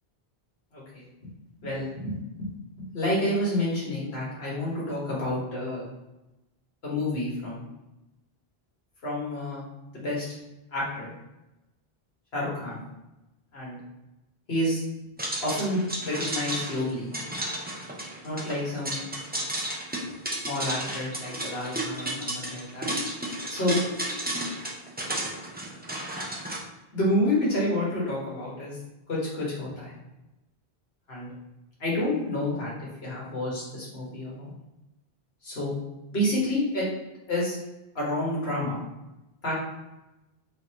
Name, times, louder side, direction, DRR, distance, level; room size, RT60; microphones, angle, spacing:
voice 1, 0.7-1.0 1.6-2.5 2.9-5.9 6.8-7.6 9.0-9.6 9.9-10.3 10.7-11.1 12.3-12.8 13.5-13.8 14.5-14.8 15.4-17.1 18.2-19.0 20.4-22.9 23.5-23.8 26.9-28.8 29.1-29.9 31.1-31.3 31.8-34.5 35.4-35.8 36.1-36.9 37.3-37.6 38.0-38.8 39.4-39.5, left 1 dB, 75° left, -6 dB, 1.8 m, -29 dB
sound 1, 15.2-26.6, right 1 dB, 10° right, 0.5 m, -33 dB
3.9 x 3.8 x 2.9 m, 0.96 s
omnidirectional pair, 1.0 m